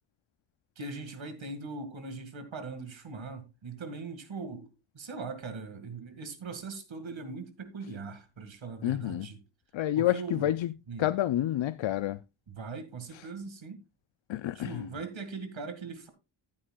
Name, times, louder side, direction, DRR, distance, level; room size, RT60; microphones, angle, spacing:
voice 1, 0.8-4.7 4.9-9.4 10.0-10.5 10.9-11.1 12.5-13.8 14.5-16.1, right 4 dB, 65° right, 2.1 m, -40 dB
voice 2, 8.8-9.3 9.7-10.7 11.0-12.2 14.3-14.8, left 13 dB, 65° left, 0.5 m, -29 dB
14.5 x 8.5 x 2.3 m
wide cardioid pair, 165°, 50 cm